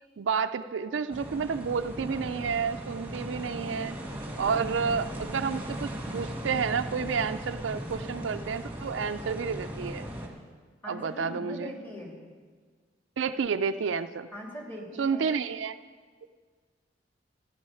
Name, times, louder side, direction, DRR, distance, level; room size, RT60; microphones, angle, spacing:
voice 1, 0.2-4.0 4.4-10.1 10.9-11.7 13.2-14.3 15.0-15.7, right 6 dB, 85° right, 9 dB, 0.4 m, -30 dB
sound 1, 1.1-10.3, equal, 10° right, 1.9 m, -38 dB
voice 2, 10.8-12.1 14.3-15.3, equal, 10° left, -2 dB, 2.9 m, -41 dB
14.5 x 11.0 x 5.6 m, 1.6 s
head